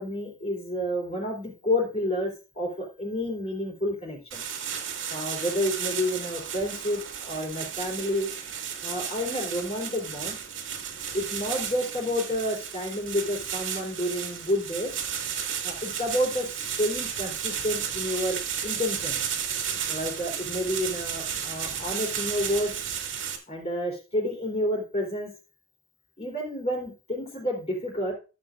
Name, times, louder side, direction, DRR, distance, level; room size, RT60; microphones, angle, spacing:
voice 1, 0.0-4.4 5.1-8.3 8.8-10.3 11.1-14.9 15.6-19.2 19.9-22.7 23.5-25.3 26.2-28.1, left 1 dB, 35° left, 1 dB, 3.5 m, -30 dB
sound 1, 4.3-23.4, right 8 dB, 80° right, 2.0 m, -33 dB
14.0 x 7.4 x 2.5 m, 0.32 s
head